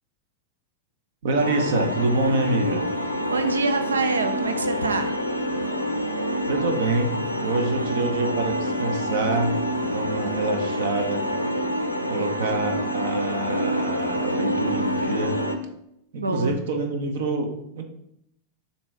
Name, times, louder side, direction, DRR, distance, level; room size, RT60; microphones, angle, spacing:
voice 1, 1.2-2.8 6.5-9.6 9.9-11.3 12.1-15.4 16.1-17.8, right 2 dB, 55° right, 5 dB, 0.9 m, -26 dB
sound 1, 1.4-15.6, equal, 90° left, 0.6 m, -27 dB
voice 2, 3.3-5.1 16.2-16.6, right 3 dB, 75° right, 8 dB, 0.6 m, -26 dB
7.1 x 2.8 x 4.7 m, 0.77 s
figure-of-eight pair, 90°, 0 cm